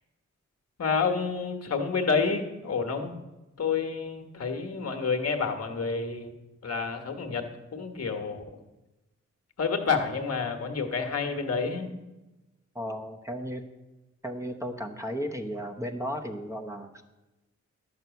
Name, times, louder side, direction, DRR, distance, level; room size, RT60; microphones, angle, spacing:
voice 1, 0.8-3.2 3.6-6.3 6.6-8.4 9.6-11.9, left 5 dB, 60° left, 5 dB, 1.4 m, -29 dB
voice 2, 12.7-13.6 14.2-17.0, equal, 10° right, 3 dB, 0.9 m, -34 dB
11.0 x 6.1 x 8.1 m, 1.1 s
wide cardioid pair, 95°, 29 cm